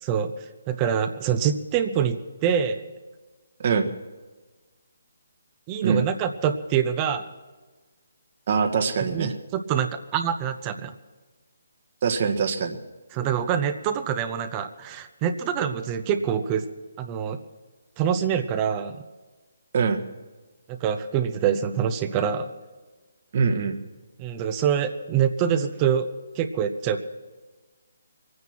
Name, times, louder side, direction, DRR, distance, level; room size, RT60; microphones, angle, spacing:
voice 1, 0.0-0.3 0.7-2.8 5.7-7.3 9.1-10.9 13.1-16.7 17.0-17.4 18.0-19.0 20.7-22.5 24.2-26.1 26.3-27.0, right 8 dB, 25° right, 8 dB, 0.8 m, -25 dB
voice 2, 8.5-9.3 12.0-12.8 19.7-20.0 23.3-23.8, right 5 dB, 45° right, 6 dB, 1.6 m, -23 dB
22.5 x 9.6 x 5.9 m, 1.3 s
hypercardioid pair, 155°, 0 cm